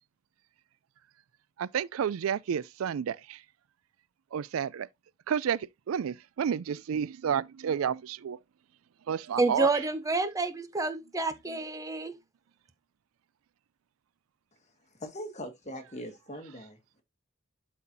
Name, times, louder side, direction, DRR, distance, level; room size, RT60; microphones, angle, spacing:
voice 1, 1.6-3.4 4.3-4.9 5.3-5.6 5.9-8.4 9.1-9.7, right 8 dB, 85° right, 0.4 m, -30 dB
voice 2, 9.4-12.1, right 3 dB, 15° right, 0.7 m, -28 dB
voice 3, 14.9-17.0, equal, 35° left, 1.7 m, -41 dB
12.0 x 4.3 x 2.7 m
head